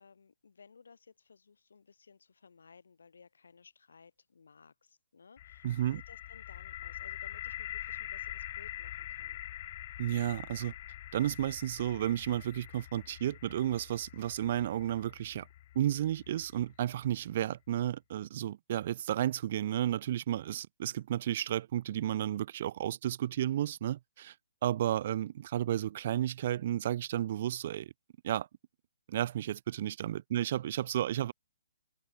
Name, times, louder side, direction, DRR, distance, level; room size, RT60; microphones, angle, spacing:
voice 1, 0.0-9.4 30.4-30.5, left 5 dB, 85° left, 3.1 m, -59 dB
sound 1, 5.4-17.2, left 13 dB, 30° left, 1.5 m, -45 dB
voice 2, 5.6-6.0 10.0-10.7 11.1-15.5 15.7-24.3 24.6-27.9 28.2-28.5 29.1-31.3, right 12 dB, 35° right, 0.5 m, -32 dB
hypercardioid pair, 170°, 0 cm